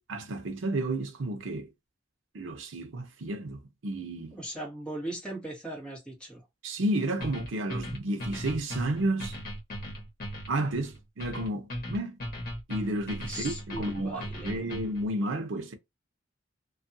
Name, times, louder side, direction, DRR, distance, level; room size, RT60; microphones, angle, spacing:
voice 1, 0.1-1.7 2.3-4.4 6.6-9.4 10.5-12.2 12.7-15.7, right 1 dB, 85° right, 0.7 m, -32 dB
voice 2, 4.3-6.4 13.3-14.6, right 1 dB, 5° left, 1.3 m, -39 dB
sound 1, 7.2-15.1, equal, 50° left, 1.1 m, -38 dB
2.6 x 2.4 x 2.6 m
head